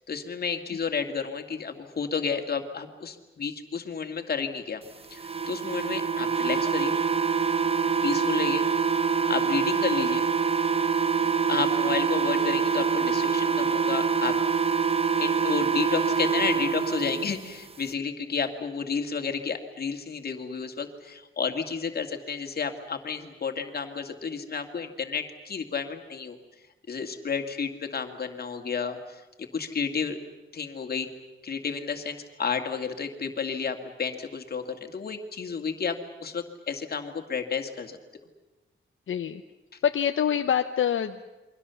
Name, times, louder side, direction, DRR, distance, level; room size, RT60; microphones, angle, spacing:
voice 1, 0.1-4.8 5.1-7.0 8.0-8.6 9.3-10.3 11.2-14.4 15.2-26.4 26.9-29.2 29.5-30.2 30.5-31.1 31.4-38.0, left 5 dB, 50° left, 5 dB, 2.2 m, -31 dB
sound 1, 5.2-17.2, right 6 dB, 30° right, 0.8 m, -25 dB
voice 2, 39.1-39.4 39.8-41.3, left 8 dB, 75° left, 6 dB, 0.9 m, -25 dB
28.5 x 23.5 x 7.0 m, 1.1 s
wide cardioid pair, 160°, 21 cm